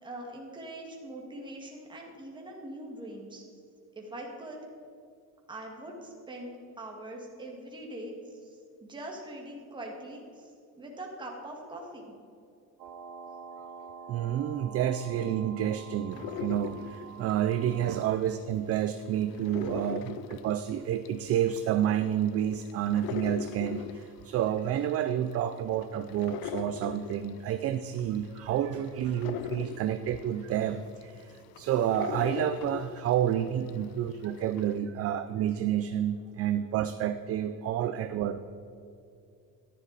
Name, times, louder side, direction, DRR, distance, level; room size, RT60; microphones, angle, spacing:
voice 1, 0.0-3.4 3.9-4.6 5.5-12.1 20.1-20.2 33.8-34.0 36.6-36.7 37.9-38.0, right 1 dB, 15° right, -1 dB, 1.9 m, -43 dB
sound 1, 12.8-18.2, right 6 dB, 70° right, 1.5 m, -47 dB
voice 2, 14.1-38.4, right 10 dB, 45° right, 9 dB, 0.4 m, -29 dB
sound 2, 16.1-18.4 18.7-33.9 34.2-34.8, left 9 dB, 80° left, 0.6 m, -40 dB
14.0 x 10.5 x 4.1 m, 2.5 s
cardioid pair, 175°, 36 cm